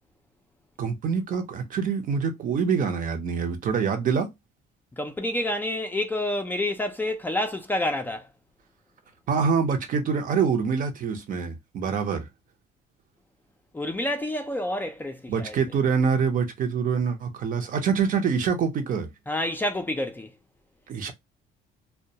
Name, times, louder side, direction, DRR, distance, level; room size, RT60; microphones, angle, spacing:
voice 1, 0.8-4.3 9.3-12.3 15.3-19.1 20.9-21.1, right 6 dB, 55° right, 0.7 m, -25 dB
voice 2, 5.0-8.3 13.7-15.6 19.3-20.3, left 1 dB, 10° left, 0.4 m, -28 dB
2.2 x 2.2 x 2.7 m
cardioid pair, 110°, 17 cm